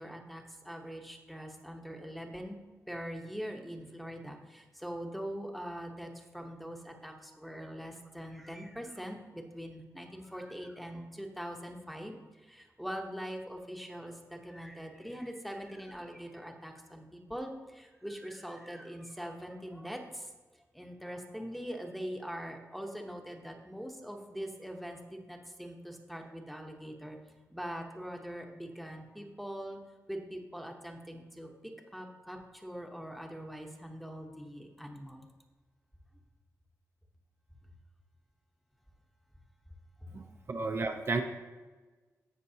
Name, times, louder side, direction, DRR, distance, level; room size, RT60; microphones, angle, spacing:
voice 1, 0.0-2.6 2.9-20.3 20.7-27.2 27.5-29.8 30.1-35.3 40.2-40.3, equal, ahead, 2 dB, 1.0 m, -42 dB
voice 2, 40.5-41.2, right 3 dB, 45° right, 4 dB, 0.7 m, -31 dB
16.5 x 5.9 x 2.8 m, 1.3 s
wide cardioid pair, 150°, 6 cm